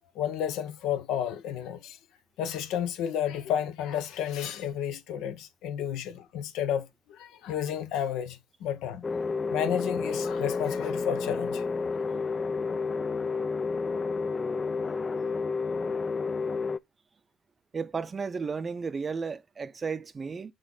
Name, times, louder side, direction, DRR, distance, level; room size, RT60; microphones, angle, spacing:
voice 1, 0.1-2.0 2.4-11.6, left 9 dB, 75° left, 1.0 m, -32 dB
sound 1, 9.0-16.8, left 4 dB, 35° left, 0.5 m, -30 dB
voice 2, 17.7-20.5, right 5 dB, 40° right, 0.6 m, -33 dB
6.5 x 4.7 x 3.7 m
hypercardioid pair, 50°, 0 cm